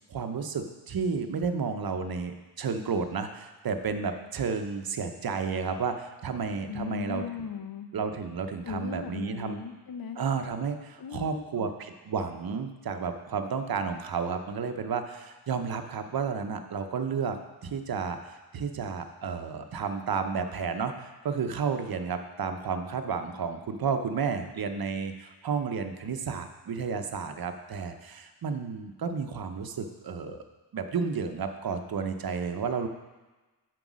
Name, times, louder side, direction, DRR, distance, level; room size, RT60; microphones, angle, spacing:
voice 1, 0.1-7.2 7.9-9.6 10.2-17.4 17.6-30.4 30.7-32.9, right 5 dB, 60° right, 7 dB, 0.7 m, -32 dB
voice 2, 6.7-7.9 8.6-10.2 11.0-11.7, left 7 dB, 60° left, 8 dB, 0.7 m, -37 dB
7.9 x 4.6 x 6.1 m, 1.2 s
wide cardioid pair, 130°, 40 cm